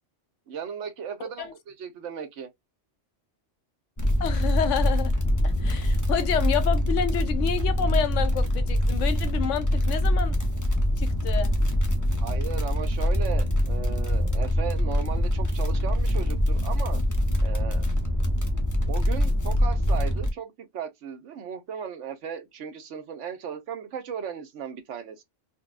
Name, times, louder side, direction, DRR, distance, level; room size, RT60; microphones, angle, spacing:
voice 1, 0.5-2.5 12.2-17.0 17.4-17.9 18.9-25.2, right 7 dB, 75° right, 1.1 m, -36 dB
voice 2, 1.2-1.5 4.2-5.1 5.4-10.4 11.0-11.5, left 8 dB, 80° left, 1.0 m, -29 dB
sound 1, 4.0-20.3, equal, 20° left, 0.5 m, -24 dB
4.1 x 2.2 x 2.4 m
omnidirectional pair, 1.2 m